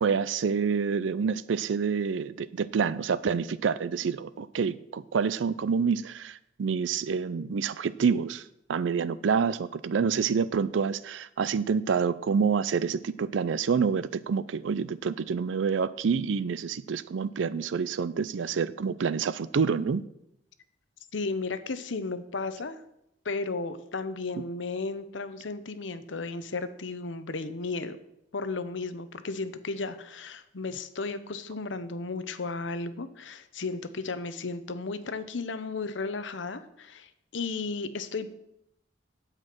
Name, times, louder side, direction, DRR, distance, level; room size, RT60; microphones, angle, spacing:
voice 1, 0.0-8.4 8.7-20.0, right 6 dB, 85° right, 16 dB, 0.4 m, -27 dB
voice 2, 21.1-22.8 23.2-28.0 28.3-38.3, left 3 dB, 85° left, 12 dB, 0.8 m, -34 dB
9.0 x 7.6 x 6.0 m, 0.80 s
head